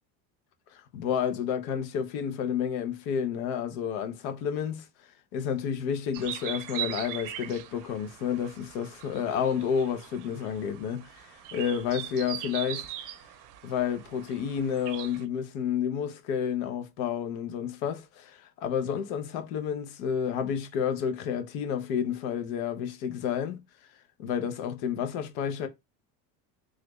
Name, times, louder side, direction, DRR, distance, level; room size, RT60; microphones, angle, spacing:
voice 1, 0.7-4.9 5.3-12.9 13.6-23.6 24.2-25.7, left 8 dB, 75° left, 0.9 m, -30 dB
sound 1, 6.1-15.2, right 12 dB, 50° right, 0.6 m, -40 dB
3.2 x 2.5 x 3.0 m
supercardioid pair, 120°, 42 cm